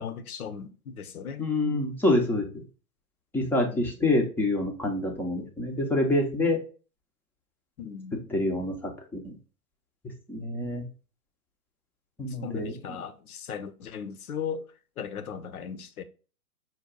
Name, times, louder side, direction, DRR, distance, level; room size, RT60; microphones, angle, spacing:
voice 1, 0.0-1.5 3.5-3.9 7.8-8.2 12.3-14.6 15.0-16.0, left 7 dB, 75° left, 0.8 m, -37 dB
voice 2, 1.4-2.6 3.3-6.6 8.3-8.7 9.2-9.3 10.3-10.8 12.2-12.7, left 2 dB, 5° left, 0.5 m, -26 dB
5.6 x 2.3 x 3.7 m
hypercardioid pair, 120°, 44 cm